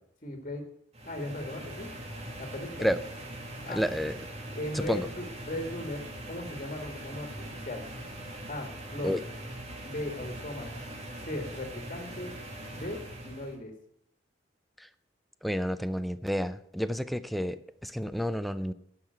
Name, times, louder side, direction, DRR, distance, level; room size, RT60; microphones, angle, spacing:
voice 1, 0.2-0.6 1.0-1.9 2.4-2.9 3.6-3.9 4.5-6.0 6.3-7.3 7.6-7.9 8.5-9.2 9.8-10.9 11.2-12.3 12.7-13.7, left 1 dB, 40° left, 4 dB, 1.7 m, -37 dB
sound 1, 0.9-13.6, right 1 dB, 35° right, 2.0 m, -42 dB
voice 2, 3.7-4.1 4.9-5.1 9.0-9.2 15.4-18.7, equal, ahead, 12 dB, 0.5 m, -30 dB
11.0 x 5.7 x 7.9 m, 0.69 s
head